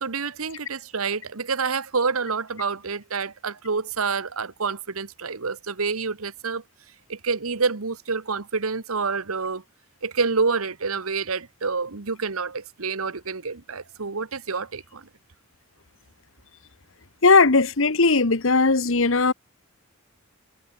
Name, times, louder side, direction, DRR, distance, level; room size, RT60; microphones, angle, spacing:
voice 1, 0.0-6.6 7.1-9.6 10.0-15.1, right 4 dB, 85° right, 1.3 m, -28 dB
voice 2, 17.2-19.3, left 3 dB, 65° left, 1.3 m, -18 dB
head